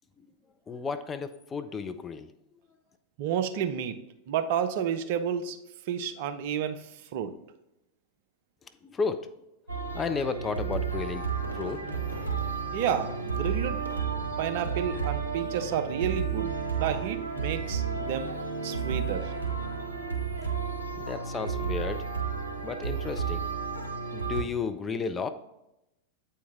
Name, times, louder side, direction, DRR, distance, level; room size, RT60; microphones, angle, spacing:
voice 1, 0.7-2.3 8.8-9.3 9.9-11.3 11.5-11.8 21.0-22.1 22.6-23.4 24.1-25.3, left 5 dB, 20° left, 8 dB, 0.5 m, -33 dB
voice 2, 3.2-4.0 4.3-5.6 5.9-7.3 12.7-13.8 14.4-18.3 18.6-19.3, right 8 dB, 50° right, 9 dB, 0.6 m, -31 dB
sound 1, 9.7-24.4, right 6 dB, 80° right, 1.1 m, -32 dB
Fireworks, 11.4-14.4 14.7-15.1 15.4-15.5, right 1 dB, 90° left, 0.6 m, -46 dB
sound 2, 11.7-17.2, left 4 dB, 20° right, 2.0 m, -49 dB
8.2 x 4.6 x 3.5 m, 0.88 s
figure-of-eight pair, 90°, 0 cm